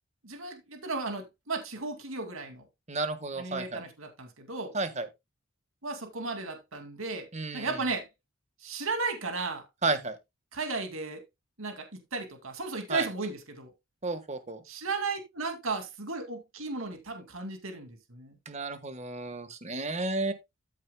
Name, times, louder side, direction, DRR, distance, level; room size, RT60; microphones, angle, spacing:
voice 1, 0.2-2.6 3.4-4.7 5.8-7.3 7.5-8.1 8.6-9.6 10.5-11.2 11.6-13.7 14.6-18.4, right 3 dB, 80° right, 2.3 m, -35 dB
voice 2, 2.9-3.8 4.7-5.1 7.3-7.8 9.8-10.2 12.9-13.1 14.0-14.6 18.4-20.3, right 3 dB, 35° right, 1.3 m, -32 dB
14.0 x 7.5 x 2.2 m
head